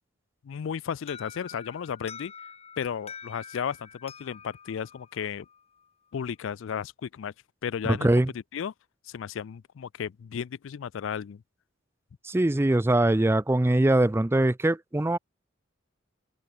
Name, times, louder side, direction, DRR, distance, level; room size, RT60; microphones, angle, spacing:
voice 1, 0.4-2.3 2.8-5.5 6.1-7.3 7.6-8.1 8.5-8.7 9.1-11.4, left 7 dB, 75° left, 0.4 m, -34 dB
Alarm, 1.1-5.9, left 6 dB, 30° left, 1.2 m, -47 dB
voice 2, 7.9-8.3 12.2-15.2, right 1 dB, 10° right, 0.4 m, -22 dB
open air
head